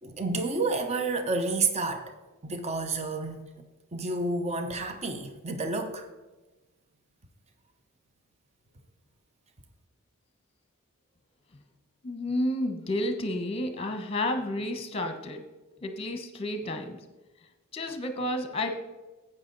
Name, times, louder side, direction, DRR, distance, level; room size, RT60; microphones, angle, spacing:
voice 1, 0.0-2.1 2.4-3.5 3.9-6.1, right 3 dB, 30° right, 0.8 m, -30 dB
voice 2, 12.0-15.4 15.8-17.0 17.7-18.7, left 1 dB, 25° left, 1.1 m, -31 dB
11.5 x 8.7 x 4.0 m
head